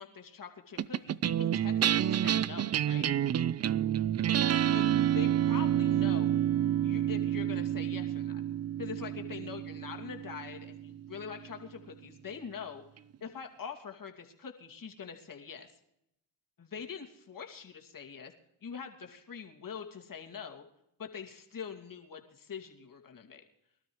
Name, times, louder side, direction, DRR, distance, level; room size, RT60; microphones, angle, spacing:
voice 1, 0.0-3.1 4.7-6.4 6.8-8.4 8.8-12.8 13.2-15.7 16.6-18.3 18.6-20.6 21.0-23.4, left 6 dB, 40° left, 3 dB, 2.5 m, -44 dB
sound 1, 0.8-11.4, right 10 dB, 35° right, 0.5 m, -29 dB
23.5 x 12.5 x 3.2 m, 0.80 s
supercardioid pair, 65°, 49 cm